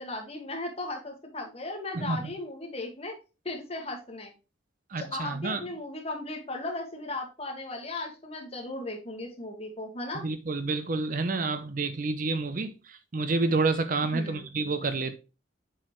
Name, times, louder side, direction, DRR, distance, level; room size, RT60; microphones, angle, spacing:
voice 1, 0.0-3.1 3.4-4.3 5.0-10.2 14.1-14.4, left 2 dB, 35° left, 1.8 m, -36 dB
voice 2, 1.9-2.3 4.9-5.6 10.1-15.2, right 3 dB, 45° right, 0.6 m, -29 dB
7.5 x 4.9 x 3.1 m
head